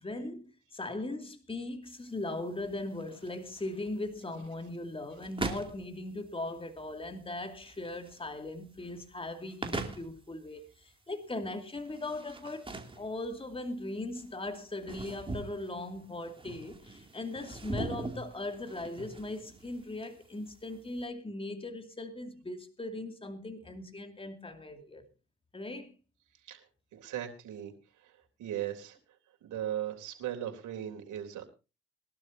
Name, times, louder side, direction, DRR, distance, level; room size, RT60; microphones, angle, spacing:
voice 1, 0.0-25.0 25.5-25.9, left 2 dB, 20° left, 2.6 m, -39 dB
sound 1, 1.8-21.0, right 2 dB, 15° right, 2.9 m, -43 dB
voice 2, 26.9-27.7 28.0-28.1 28.4-29.0 29.4-31.4, right 11 dB, 80° right, 3.6 m, -37 dB
22.5 x 12.5 x 2.8 m
cardioid pair, 90°, 30 cm